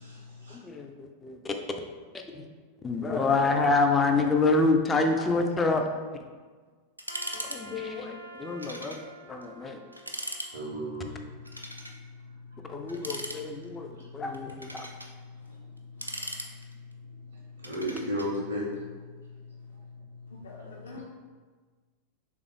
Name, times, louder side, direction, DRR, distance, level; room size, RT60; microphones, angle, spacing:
voice 1, 0.0-0.6 10.5-14.4 14.7-20.3, equal, 60° right, -6 dB, 0.7 m, -39 dB
voice 2, 0.5-1.5 2.3-2.5 2.8-5.8 7.3-8.9 9.3-9.8 12.7-14.9, left 3 dB, 15° left, 4 dB, 0.4 m, -27 dB
voice 3, 5.2-5.6 15.3-15.6 15.9-16.2 19.7-19.8 20.2-21.0, left 3 dB, 65° left, -2 dB, 0.8 m, -47 dB
sound 1, 7.0-7.6 7.9-8.0 8.6-9.0 9.4-9.5 9.9-10.5 11.4-12.0 12.9-13.8 14.3-15.1 15.8-16.9 17.6-18.3, right 1 dB, 85° right, 0.3 m, -39 dB
Trumpet, 7.1-11.4, equal, 85° left, 0.4 m, -48 dB
3.3 x 2.4 x 3.6 m, 1.4 s
figure-of-eight pair, 90°, 0 cm